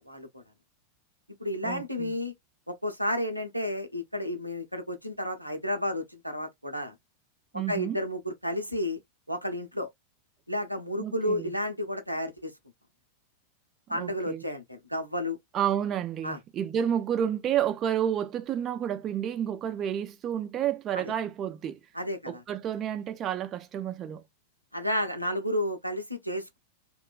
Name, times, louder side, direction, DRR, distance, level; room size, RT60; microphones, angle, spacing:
voice 1, 0.1-0.4 1.4-2.3 2.7-6.9 7.7-9.0 9.3-9.9 10.5-12.5 13.9-15.4 16.2-16.4 20.9-21.0 21.9-22.4 24.7-26.6, left 1 dB, 90° right, 0.6 m, -31 dB
voice 2, 1.6-2.1 7.5-8.0 11.0-11.5 13.9-14.4 15.5-21.8 22.3-24.2, right 9 dB, 30° right, 0.3 m, -30 dB
2.9 x 2.2 x 2.2 m
figure-of-eight pair, 90°, 0 cm